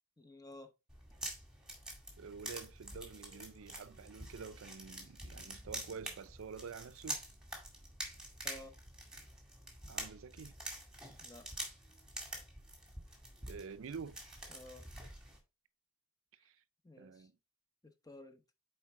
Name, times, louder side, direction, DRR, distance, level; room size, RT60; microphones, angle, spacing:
voice 1, 0.2-0.7 8.4-8.8 11.2-11.5 14.5-15.1 16.4-16.5 16.8-17.3 17.8-18.4, left 1 dB, 15° left, 0.8 m, -53 dB
sound 1, 0.9-15.4, right 1 dB, 5° right, 2.1 m, -47 dB
voice 2, 2.2-7.2 9.9-10.5 13.5-14.2 16.5-16.6 17.0-17.3, right 5 dB, 70° right, 0.5 m, -48 dB
sound 2, 3.1-8.0, right 1 dB, 75° left, 3.2 m, -70 dB
7.5 x 4.6 x 3.6 m
head